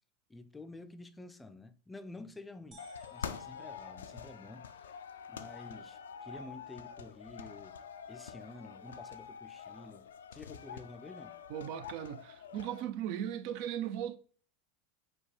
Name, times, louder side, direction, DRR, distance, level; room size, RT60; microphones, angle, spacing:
voice 1, 0.3-2.8 3.1-4.9 5.3-7.8 8.1-11.4, left 2 dB, 10° left, 0.4 m, -50 dB
sound 1, 2.7-4.7, right 5 dB, 30° right, 0.8 m, -63 dB
sound 2, 2.8-12.8, left 7 dB, 85° left, 0.4 m, -46 dB
voice 2, 11.5-14.2, right 10 dB, 60° right, 0.4 m, -37 dB
4.7 x 2.3 x 4.3 m
hypercardioid pair, 95°, 0 cm